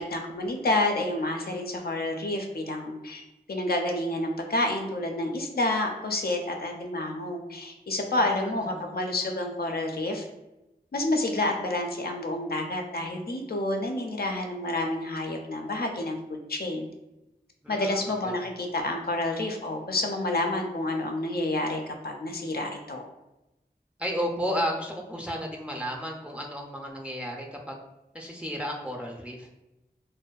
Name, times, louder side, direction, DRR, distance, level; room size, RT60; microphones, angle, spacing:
voice 1, 0.0-3.2 3.5-10.3 10.9-16.9 17.7-23.0, left 2 dB, 70° left, 3 dB, 0.4 m, -29 dB
voice 2, 8.2-9.0 17.6-18.4 24.0-27.8 28.1-29.5, equal, 5° right, 1 dB, 0.3 m, -33 dB
2.5 x 2.1 x 2.2 m, 0.96 s
wide cardioid pair, 40°, 17 cm